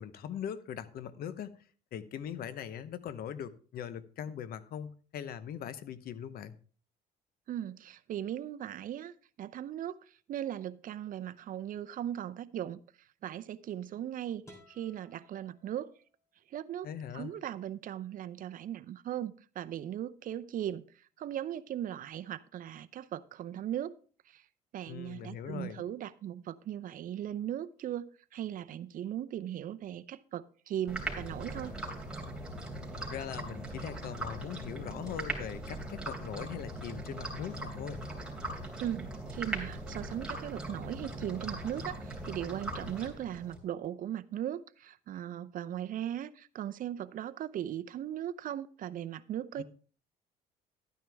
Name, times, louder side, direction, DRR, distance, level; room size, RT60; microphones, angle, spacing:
voice 1, 0.0-1.6 1.9-6.6 16.8-17.4 24.9-25.8 33.0-38.0 49.6-49.7, left 9 dB, 65° left, 0.9 m, -41 dB
voice 2, 7.5-10.0 10.3-12.8 13.2-14.4 14.7-15.9 16.5-16.9 17.1-20.8 21.2-24.0 24.3-24.4 24.7-31.8 38.8-49.6, right 11 dB, 55° right, 0.6 m, -38 dB
sound 1, 14.4-16.4, left 1 dB, 20° left, 3.2 m, -59 dB
sound 2, 30.9-43.6, right 1 dB, 5° right, 3.0 m, -40 dB
12.5 x 9.3 x 3.4 m
cardioid pair, 110°, 17 cm